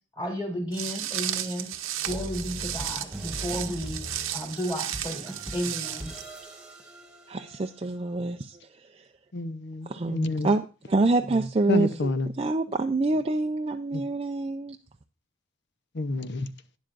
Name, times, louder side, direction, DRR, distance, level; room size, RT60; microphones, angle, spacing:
voice 1, 0.1-1.7 2.0-4.0 4.3-6.1, equal, 20° left, 3.3 m, -33 dB
Walk footsteps, 0.7-6.2, right 11 dB, 65° right, 0.8 m, -34 dB
sound 1, 2.1-7.9, equal, 5° right, 1.4 m, -41 dB
voice 2, 7.3-9.1 9.9-12.1 12.4-14.8, right 2 dB, 25° right, 0.4 m, -27 dB
voice 3, 9.3-10.5 11.7-12.3 13.9-14.0 15.9-16.5, left 2 dB, 55° left, 0.7 m, -29 dB
12.0 x 10.5 x 2.5 m
head